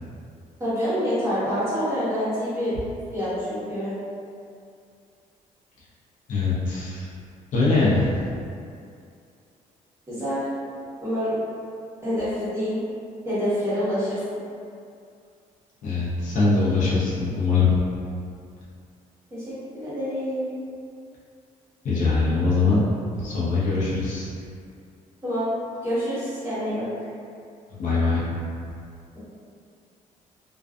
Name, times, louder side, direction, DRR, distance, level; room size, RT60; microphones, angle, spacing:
voice 1, 0.6-2.7 3.1-3.9 10.1-10.4 11.0-11.4 12.0-12.8 13.2-14.2 19.3-19.4 19.7-20.5 25.2-25.5 25.8-26.9, equal, 20° right, -13 dB, 1.1 m, -26 dB
voice 2, 6.3-7.1 7.5-8.1 15.8-17.7 21.8-22.9 23.2-24.3 27.7-28.2, left 3 dB, 60° left, -8 dB, 0.7 m, -22 dB
2.6 x 2.3 x 2.4 m, 2.4 s
cardioid pair, 125°, 15 cm